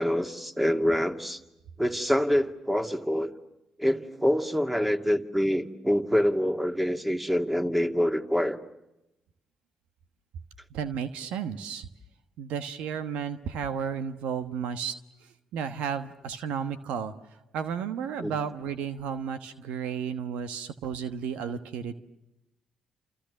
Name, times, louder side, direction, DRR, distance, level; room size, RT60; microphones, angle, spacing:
voice 1, 0.0-1.4 1.8-3.3 3.8-8.6 18.2-18.3, equal, 5° right, 6 dB, 2.5 m, -26 dB
voice 2, 10.7-11.9 12.4-14.9 15.5-17.1 17.5-21.9, right 7 dB, 75° right, 10 dB, 1.2 m, -33 dB
30.0 x 29.0 x 6.5 m, 0.90 s
hypercardioid pair, 45°, 2 cm